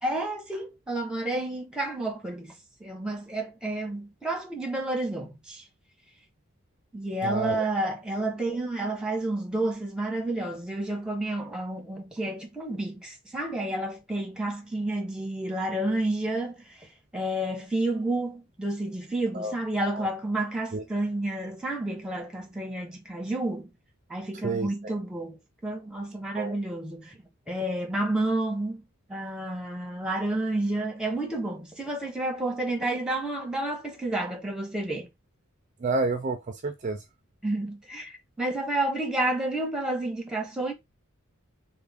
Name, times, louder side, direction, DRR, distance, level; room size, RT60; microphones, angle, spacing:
voice 1, 0.0-2.5 2.8-5.6 6.9-16.9 17.1-23.7 24.1-27.2 27.5-28.8 29.1-35.1 37.4-40.7, right 1 dB, 5° right, 0.8 m, -30 dB
voice 2, 7.2-7.7 19.3-19.5 19.9-20.1 20.7-20.8 24.4-25.0 26.3-26.6 35.8-37.0, right 3 dB, 35° right, 0.4 m, -30 dB
3.4 x 2.2 x 3.4 m
head